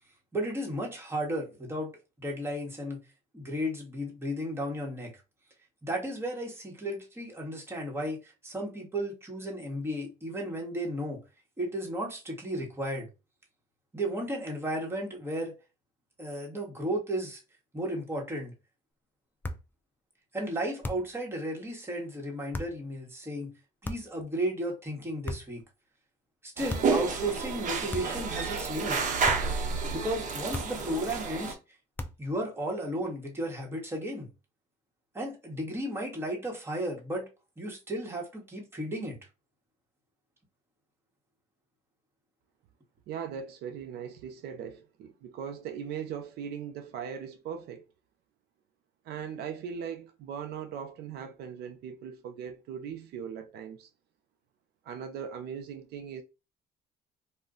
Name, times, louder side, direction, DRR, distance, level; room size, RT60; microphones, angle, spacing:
voice 1, 0.3-1.9 2.2-3.0 3.3-5.1 5.8-11.2 11.6-13.1 13.9-15.5 16.2-17.4 17.7-18.5 20.3-23.5 23.8-25.6 26.4-29.1 29.9-31.6 32.2-34.3 35.1-37.3 37.6-39.2, right 1 dB, 15° right, 1.2 m, -34 dB
sound 1, 19.4-19.7 20.8-21.2 22.5-22.8 23.8-24.2 25.2-25.7 26.7-27.0 27.9-28.3 29.2-29.6 30.5-30.9 32.0-32.3, left 2 dB, 10° left, 0.4 m, -37 dB
sound 2, 26.6-31.5, right 4 dB, 45° right, 0.8 m, -30 dB
voice 2, 43.1-47.8 49.0-53.9 54.8-56.2, right 7 dB, 75° right, 0.5 m, -39 dB
2.4 x 2.1 x 3.6 m
cardioid pair, 110°, 17 cm